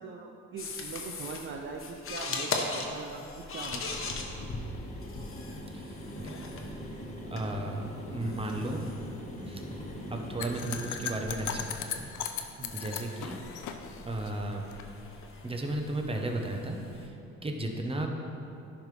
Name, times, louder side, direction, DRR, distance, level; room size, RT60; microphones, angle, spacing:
voice 1, 0.0-4.1 12.6-12.7, right 4 dB, 40° right, 2 dB, 0.5 m, -41 dB
sound 1, 0.6-17.1, left 3 dB, 45° left, 0.9 m, -41 dB
sound 2, 3.4-10.9, equal, 25° left, 1.3 m, -42 dB
voice 2, 5.7-6.3 7.3-7.9 8.1-8.9 9.4-9.6 10.1-12.0 12.4-13.4 14.0-14.6 15.4-16.8 17.4-18.1, right 1 dB, 20° right, 2 dB, 0.9 m, -34 dB
sound 3, 10.4-14.8, left 9 dB, 80° left, 0.6 m, -37 dB
10.5 x 5.1 x 3.3 m, 2.7 s
cardioid pair, 90°, 30 cm